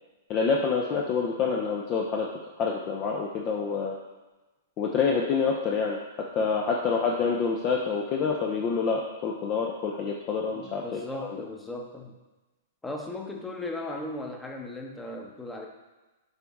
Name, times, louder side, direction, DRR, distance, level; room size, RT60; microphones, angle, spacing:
voice 1, 0.3-2.3 2.6-4.0 4.8-6.0 6.4-11.4, left 5 dB, 35° left, -1 dB, 0.7 m, -27 dB
voice 2, 10.5-12.2 12.8-15.7, left 2 dB, 10° left, 2 dB, 1.0 m, -37 dB
7.9 x 4.0 x 3.6 m, 1.2 s
hypercardioid pair, 110°, 0 cm